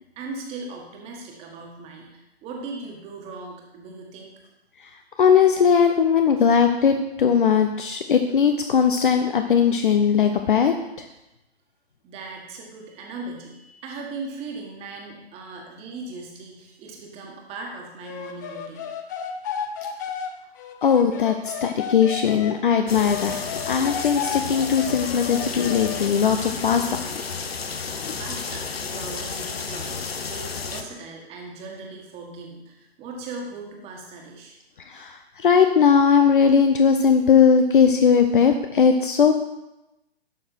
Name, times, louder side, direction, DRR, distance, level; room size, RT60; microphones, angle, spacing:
voice 1, 0.1-4.3 5.5-6.0 6.4-6.5 8.8-9.2 12.0-18.9 28.2-34.6, right 3 dB, 20° right, 1 dB, 1.7 m, -38 dB
voice 2, 5.2-11.1 20.8-27.2 28.1-28.2 34.9-39.3, left 6 dB, 50° left, 6 dB, 0.8 m, -19 dB
sound 1, 18.0-22.6 23.0-26.2, left 7 dB, 20° left, 0.5 m, -33 dB
sound 2, 22.9-30.8, left 5 dB, 65° left, 1.0 m, -32 dB
11.5 x 6.6 x 4.5 m, 0.93 s
figure-of-eight pair, 130°, 32 cm